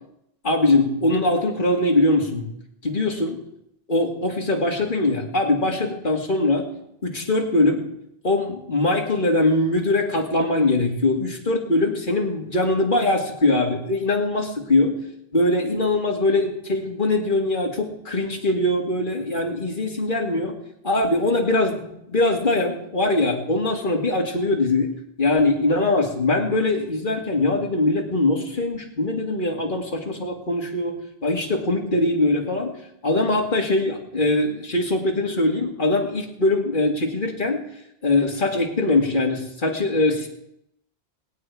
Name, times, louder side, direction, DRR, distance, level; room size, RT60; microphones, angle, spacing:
voice 1, 0.4-2.5 2.8-3.4 3.9-6.7 7.0-7.8 8.2-15.0 15.3-20.5 20.8-24.9 25.2-32.8 33.0-37.6 38.0-40.3, left 2 dB, 50° left, 0 dB, 2.5 m, -22 dB
21.0 x 8.8 x 4.8 m, 0.79 s
omnidirectional pair, 1.1 m